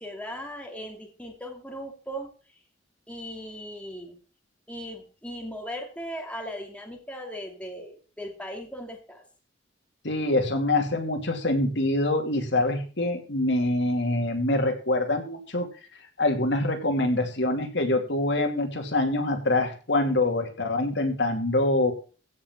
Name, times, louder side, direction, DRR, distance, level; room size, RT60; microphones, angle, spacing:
voice 1, 0.0-2.3 3.1-4.2 4.7-9.2, equal, 5° left, 2 dB, 2.5 m, -38 dB
voice 2, 10.0-15.7 16.2-21.9, left 2 dB, 65° left, 5 dB, 2.6 m, -25 dB
16.0 x 5.6 x 7.4 m, 0.37 s
head